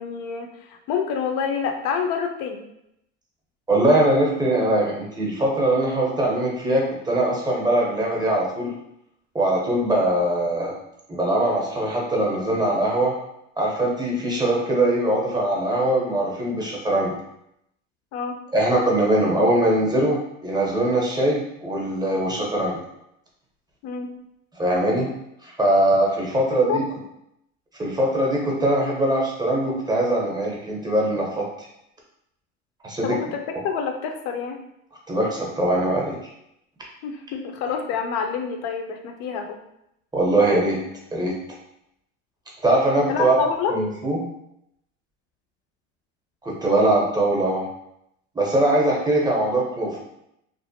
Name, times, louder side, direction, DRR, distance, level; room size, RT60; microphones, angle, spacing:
voice 1, 0.0-2.6 18.1-18.4 23.8-24.1 26.7-26.8 33.0-34.6 37.0-39.6 43.1-43.7, left 6 dB, 60° left, 4 dB, 0.6 m, -27 dB
voice 2, 3.7-8.7 9.3-10.7 11.1-13.1 13.6-17.1 18.5-22.8 24.6-25.1 25.4-26.8 27.8-31.7 32.8-33.2 35.1-36.1 40.1-40.8 41.1-41.3 42.6-43.3 43.7-44.2 46.4-47.7 48.3-50.0, right 1 dB, 10° right, -3 dB, 0.7 m, -21 dB
2.5 x 2.1 x 2.6 m, 0.80 s
supercardioid pair, 100°, 37 cm